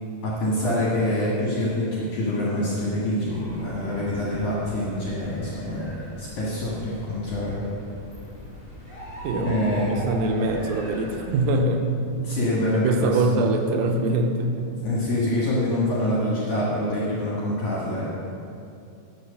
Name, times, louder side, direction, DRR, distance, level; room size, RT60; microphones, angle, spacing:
voice 1, 0.2-5.8 6.2-7.6 9.4-9.9 12.2-13.5 14.6-18.1, left 1 dB, 55° left, -6 dB, 2.8 m, -25 dB
sound 1, 3.3-11.6, right 1 dB, 10° left, 2.4 m, -39 dB
voice 2, 9.2-9.6 9.9-11.9 12.7-14.8, right 2 dB, 75° right, 4 dB, 2.3 m, -24 dB
11.0 x 5.6 x 6.8 m, 2.5 s
omnidirectional pair, 4.5 m